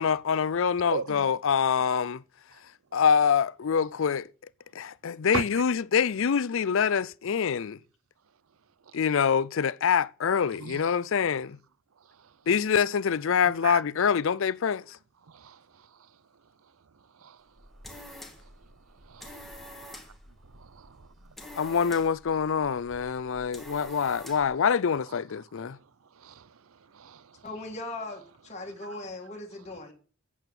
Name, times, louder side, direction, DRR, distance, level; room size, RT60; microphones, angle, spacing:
voice 1, 0.0-2.2 2.9-4.3 4.7-7.8 8.9-11.6 12.5-15.0 21.6-25.8, left 6 dB, 65° left, 0.4 m, -25 dB
voice 2, 0.9-1.3 5.3-5.4 10.5-10.8 13.6-13.8 15.3-15.6 17.2-17.4 20.7-21.1 26.2-26.5 26.9-27.4, right 6 dB, 75° right, 0.6 m, -36 dB
sound 1, 17.5-24.6, left 1 dB, ahead, 1.9 m, -47 dB
voice 3, 27.4-29.9, left 2 dB, 30° left, 1.9 m, -39 dB
9.1 x 7.8 x 7.0 m
head